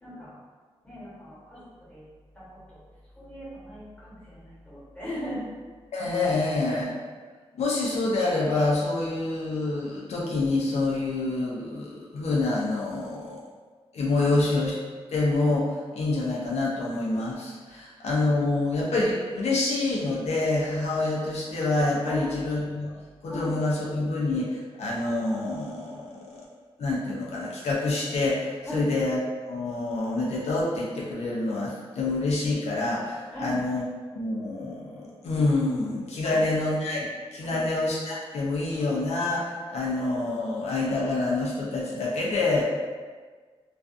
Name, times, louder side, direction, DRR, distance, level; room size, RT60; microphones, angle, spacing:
voice 1, 0.0-0.4 0.8-1.6 1.9-2.0 2.3-2.4 3.2-5.4 14.2-14.3 17.7-17.8 22.1-22.5 23.3-23.5 28.6-28.9 33.3-33.5 36.2-36.4 37.4-37.6, left 1 dB, 10° left, -10 dB, 1.2 m, -37 dB
voice 2, 5.9-6.9 7.6-13.4 13.9-14.7 15.1-22.9 23.2-26.5 26.8-29.2 29.5-33.9 34.1-42.6, left 2 dB, 90° left, -5 dB, 0.5 m, -27 dB
2.4 x 2.3 x 2.5 m, 1.5 s
wide cardioid pair, 100°, 11 cm